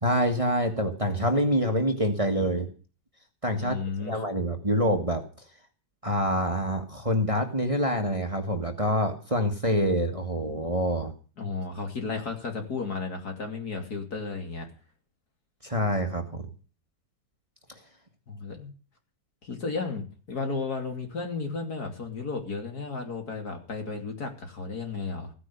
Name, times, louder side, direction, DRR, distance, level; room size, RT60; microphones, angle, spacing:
voice 1, 0.0-2.7 3.4-3.8 4.0-5.2 6.0-11.1 15.6-16.4, equal, 20° right, 5 dB, 1.6 m, -26 dB
voice 2, 3.6-4.2 11.4-14.7 18.3-18.7 19.4-25.3, left 4 dB, 65° left, 3 dB, 3.4 m, -33 dB
16.0 x 9.6 x 6.9 m, 0.38 s
omnidirectional pair, 1.8 m